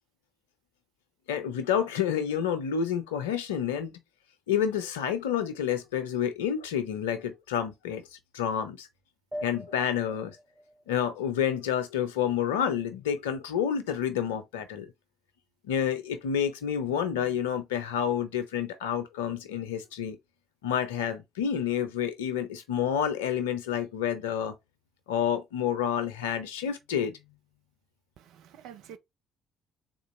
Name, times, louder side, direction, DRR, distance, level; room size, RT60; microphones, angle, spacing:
voice 1, 1.3-3.9 4.5-8.0 8.3-8.9 9.4-10.4 10.9-14.9 15.6-20.2 20.6-24.5 25.1-27.2, left 8 dB, 75° left, 0.6 m, -29 dB
sound 1, 9.3-12.3, equal, 5° right, 0.9 m, -44 dB
voice 2, 28.2-29.0, right 9 dB, 65° right, 0.5 m, -48 dB
3.8 x 2.5 x 4.3 m
figure-of-eight pair, 45°, 0 cm